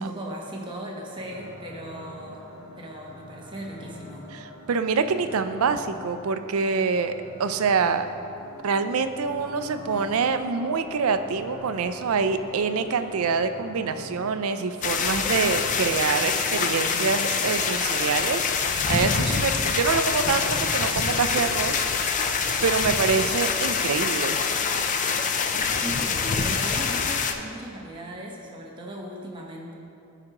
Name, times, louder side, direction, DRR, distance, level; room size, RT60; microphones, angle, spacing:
voice 1, 0.0-2.4 2.8-4.3 25.5-29.7, right 1 dB, 20° right, -1 dB, 0.9 m, -37 dB
sound 1, 1.2-17.3, left 1 dB, 40° right, 1.1 m, -43 dB
voice 2, 4.3-7.1 7.4-8.1 8.6-22.3 22.6-24.4, right 5 dB, 80° right, 9 dB, 0.4 m, -26 dB
sound 2, 14.8-27.3, left 5 dB, 35° left, 0.4 m, -25 dB
sound 3, 15.9-17.1 17.8-18.4 18.7-19.6 20.2-20.8 21.4-21.6 22.8-23.7, left 3 dB, 85° left, 0.6 m, -46 dB
14.0 x 4.9 x 2.9 m, 2.6 s
head